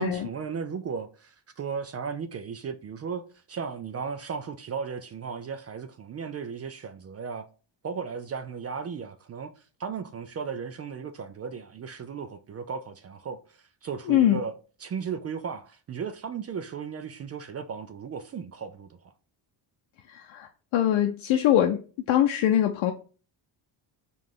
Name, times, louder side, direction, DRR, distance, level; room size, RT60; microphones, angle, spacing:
voice 1, 0.0-7.5 7.8-14.5 14.8-19.1, right 6 dB, 35° right, 0.4 m, -36 dB
voice 2, 14.1-14.4 20.1-21.8 22.1-22.9, left 11 dB, 75° left, 0.7 m, -23 dB
4.8 x 2.5 x 3.6 m
cardioid pair, 95°, 47 cm